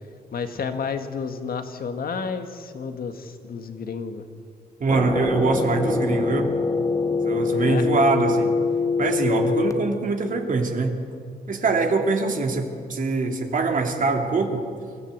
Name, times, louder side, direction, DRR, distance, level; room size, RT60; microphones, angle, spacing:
voice 1, 0.3-4.2 7.6-7.9 11.7-11.9, left 5 dB, 65° left, 7 dB, 1.8 m, -31 dB
voice 2, 4.8-6.5 7.2-8.5 9.0-11.0 11.5-14.6, right 3 dB, 55° right, 3 dB, 2.6 m, -23 dB
sound 1, 4.9-9.7, left 4 dB, 20° left, 1.2 m, -24 dB
24.5 x 15.5 x 8.2 m, 2.3 s
cardioid pair, 105°, 16 cm